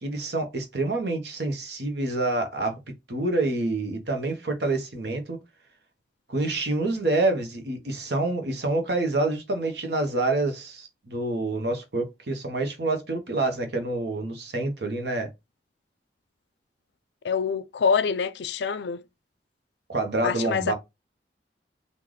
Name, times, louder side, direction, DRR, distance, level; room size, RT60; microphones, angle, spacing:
voice 1, 0.0-2.8 3.1-5.4 6.3-15.3 19.9-20.7, right 2 dB, 65° right, 1.0 m, -27 dB
voice 2, 17.2-19.0 20.2-20.7, left 6 dB, 75° left, 0.4 m, -25 dB
3.9 x 2.5 x 3.1 m
head